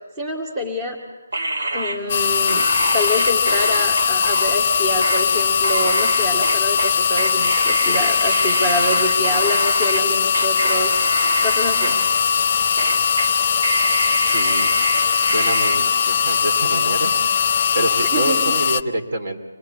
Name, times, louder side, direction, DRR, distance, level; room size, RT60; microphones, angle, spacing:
voice 1, 0.2-1.0 1.7-2.7 2.9-12.0 18.1-18.5, equal, 15° right, 2 dB, 2.1 m, -26 dB
sound 1, 1.3-10.0 10.3-12.5 12.8-13.3 13.6-15.8, right 2 dB, 65° right, 2.8 m, -26 dB
sound 2, 2.1-18.8, left 7 dB, 40° left, 0.7 m, -20 dB
voice 2, 14.3-14.9 15.3-17.2 17.7-19.4, right 1 dB, 50° right, 2 dB, 2.8 m, -26 dB
26.0 x 19.0 x 8.4 m, 1.2 s
figure-of-eight pair, 155°, 0 cm